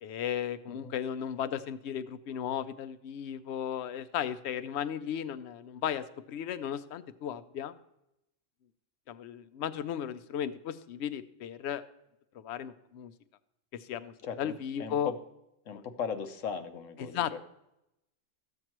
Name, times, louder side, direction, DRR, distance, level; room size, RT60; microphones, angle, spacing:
voice 1, 0.0-7.7 9.1-11.8 12.3-13.1 13.7-15.1 15.7-15.8 17.1-17.4, left 9 dB, 65° left, 12 dB, 0.8 m, -35 dB
voice 2, 14.2-15.2 15.7-17.4, left 6 dB, 85° left, 8 dB, 1.2 m, -38 dB
14.0 x 7.9 x 3.0 m, 0.85 s
omnidirectional pair, 1.3 m